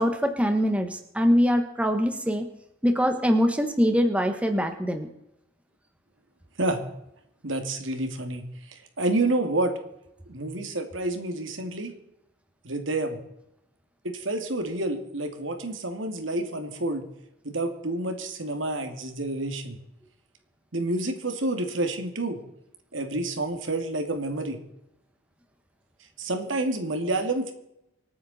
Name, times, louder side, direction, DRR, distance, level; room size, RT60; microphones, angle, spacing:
voice 1, 0.0-2.5 2.8-5.1, equal, 5° right, 6 dB, 1.4 m, -23 dB
voice 2, 7.4-9.7 10.3-11.9 12.6-13.2 14.0-17.0 17.4-19.8 20.7-22.4 22.9-24.6 26.2-27.5, right 2 dB, 85° right, 6 dB, 2.4 m, -29 dB
26.0 x 9.4 x 4.3 m, 0.83 s
head